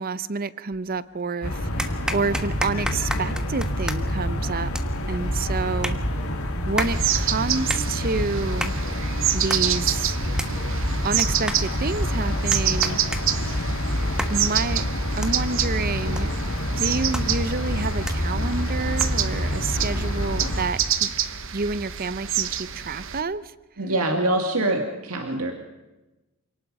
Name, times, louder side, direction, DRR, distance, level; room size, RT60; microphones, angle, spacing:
voice 1, 0.0-4.7 5.1-6.0 6.7-8.7 9.3-10.2 11.0-13.0 14.3-14.8 15.2-16.3 16.8-21.1 21.5-23.5, right 4 dB, 40° right, 17 dB, 0.7 m, -28 dB
sound 1, 0.7-1.3 1.8-19.4, equal, 5° right, 1.3 m, -35 dB
sound 2, 1.4-20.7, equal, 85° left, 3.8 m, -27 dB
sound 3, 6.8-23.2, right 10 dB, 60° right, 1.1 m, -28 dB
voice 2, 23.8-25.5, right 2 dB, 80° right, 3 dB, 2.2 m, -24 dB
28.0 x 18.5 x 5.4 m, 1.1 s
head